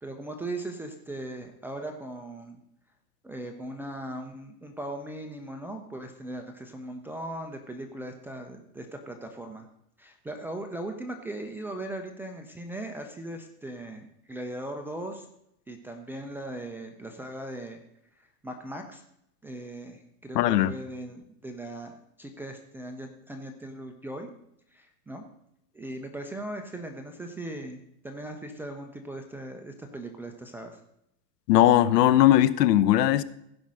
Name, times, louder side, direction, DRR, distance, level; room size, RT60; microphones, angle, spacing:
voice 1, 0.0-2.6 3.2-9.7 10.0-15.3 15.7-17.8 18.2-19.0 19.4-24.3 24.7-25.2 25.7-30.8, right 1 dB, 5° right, 0.4 m, -39 dB
voice 2, 20.3-20.7 31.5-33.2, left 13 dB, 70° left, 0.9 m, -19 dB
16.0 x 5.4 x 6.2 m
hypercardioid pair, 130°, 50 cm